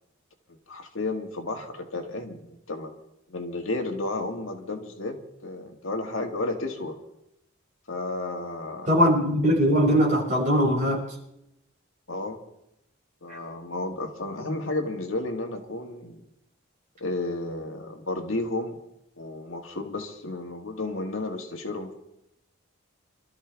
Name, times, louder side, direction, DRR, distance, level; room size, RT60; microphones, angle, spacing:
voice 1, 0.5-2.9 3.3-7.0 7.9-8.9 12.1-12.4 13.2-16.2 17.0-18.8 19.2-21.9, left 2 dB, 70° left, 3 dB, 2.0 m, -32 dB
voice 2, 8.9-11.0, equal, 40° right, -3 dB, 6.1 m, -21 dB
26.5 x 13.5 x 3.5 m, 0.80 s
head